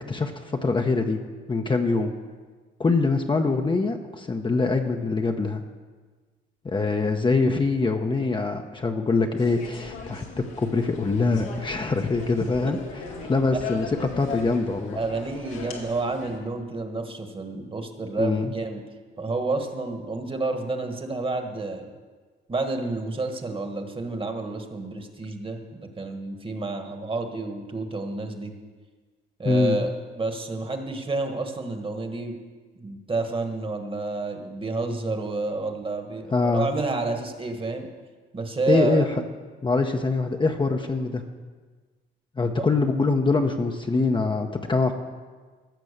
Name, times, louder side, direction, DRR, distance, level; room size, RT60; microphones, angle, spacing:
voice 1, 0.1-1.2 1.5-2.1 2.8-5.6 6.6-12.8 13.3-15.0 18.2-18.5 29.4-29.8 36.3-36.7 38.7-39.0 39.6-41.2 42.4-44.9, left 3 dB, 25° left, 4 dB, 0.8 m, -24 dB
sound 1, 9.4-16.4, left 4 dB, 90° left, 2.1 m, -38 dB
voice 2, 13.1-13.6 14.9-18.8 19.2-21.9 22.5-28.5 29.4-32.4 32.8-37.9 38.3-39.1 42.6-42.7, right 3 dB, 25° right, 6 dB, 1.4 m, -29 dB
15.0 x 6.0 x 6.6 m, 1.4 s
cardioid pair, 90°, 20 cm